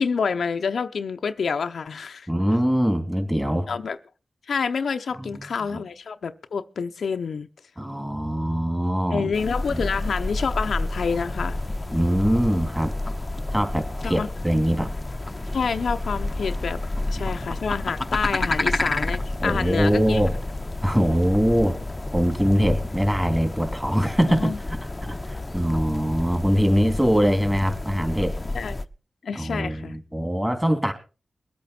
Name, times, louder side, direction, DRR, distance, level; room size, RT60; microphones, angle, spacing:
voice 1, 0.0-2.3 3.7-4.0 4.5-7.5 9.1-11.6 14.0-14.3 15.5-16.8 17.1-20.2 24.4-24.6 28.5-28.8 29.2-30.0, left 5 dB, 85° left, 0.7 m, -27 dB
voice 2, 2.3-3.7 5.1-5.4 5.7-5.8 7.8-9.3 9.7-9.8 11.9-12.9 13.5-14.9 17.2-17.4 19.4-20.3 20.8-21.8 22.1-28.3 29.3-30.9, equal, 10° right, 3.2 m, -23 dB
sound 1, 9.3-28.9, left 2 dB, 25° left, 0.8 m, -30 dB
22.0 x 8.5 x 4.3 m
cardioid pair, 65°, 0 cm